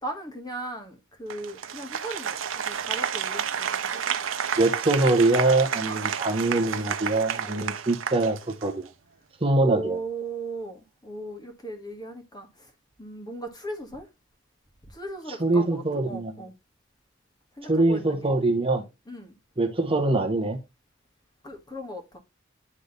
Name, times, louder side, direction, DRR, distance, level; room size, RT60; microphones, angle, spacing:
voice 1, 0.0-4.1 5.8-6.0 9.6-12.7 13.0-14.1 14.8-16.5 17.5-18.3 19.1-19.4 21.4-22.2, right 2 dB, 20° left, 1.6 m, -37 dB
Applause, 1.3-8.9, right 8 dB, 80° right, 0.7 m, -31 dB
voice 2, 4.6-8.8 9.4-10.0 15.4-16.3 17.7-18.8 19.6-20.6, right 2 dB, 30° right, 1.1 m, -23 dB
9.7 x 3.4 x 4.0 m
head